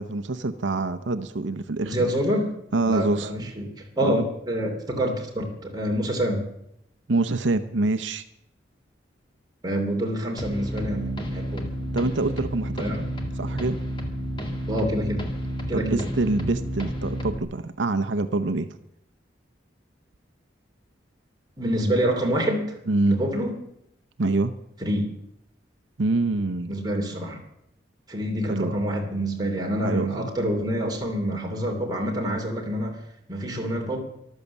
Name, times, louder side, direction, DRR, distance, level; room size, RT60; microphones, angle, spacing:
voice 1, 0.0-2.1 2.7-3.5 4.0-4.2 7.1-8.2 11.9-12.8 13.4-13.8 15.7-18.8 22.9-23.2 24.2-24.5 26.0-26.8 28.5-28.7 29.8-30.3, right 2 dB, 80° right, 10 dB, 0.8 m, -25 dB
voice 2, 1.8-2.5 2.8-6.4 9.6-11.7 12.8-13.0 14.7-15.3 15.7-16.1 21.6-22.8 23.1-23.6 24.8-25.0 26.7-27.4 28.1-33.0 33.3-34.0, equal, 20° right, 1 dB, 3.0 m, -27 dB
sound 1, 10.4-17.4, equal, 25° left, 1.9 m, -31 dB
14.0 x 12.5 x 7.2 m, 0.78 s
head